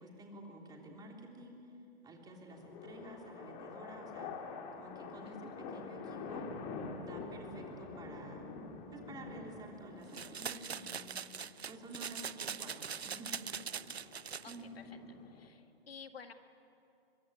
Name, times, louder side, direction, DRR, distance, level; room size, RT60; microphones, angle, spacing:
voice 1, 0.0-1.6 2.0-4.4 4.8-6.5 7.0-8.5 8.9-11.2 11.7-13.5 14.5-15.0, right 1 dB, 10° right, 1 dB, 3.3 m, -51 dB
sound 1, 2.5-15.5, left 4 dB, 30° left, 2.3 m, -47 dB
sound 2, 10.1-14.6, right 7 dB, 85° right, 0.6 m, -42 dB
voice 2, 14.4-15.0 15.3-16.3, left 6 dB, 70° left, 8 dB, 1.9 m, -53 dB
23.5 x 22.5 x 9.6 m, 2.6 s
figure-of-eight pair, 125°, 31 cm